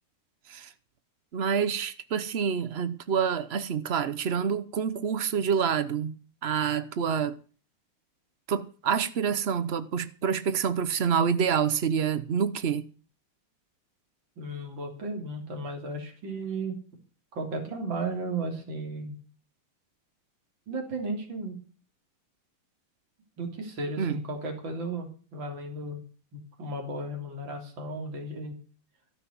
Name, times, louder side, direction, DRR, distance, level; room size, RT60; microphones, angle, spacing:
voice 1, 1.3-6.2 6.4-7.3 8.5-12.8 24.0-24.2, right 7 dB, 85° right, 0.5 m, -27 dB
voice 2, 14.4-16.8 17.3-19.2 20.7-21.6 23.4-26.0 26.3-28.6, right 2 dB, 60° right, 3.9 m, -34 dB
16.0 x 6.0 x 9.4 m
omnidirectional pair, 2.3 m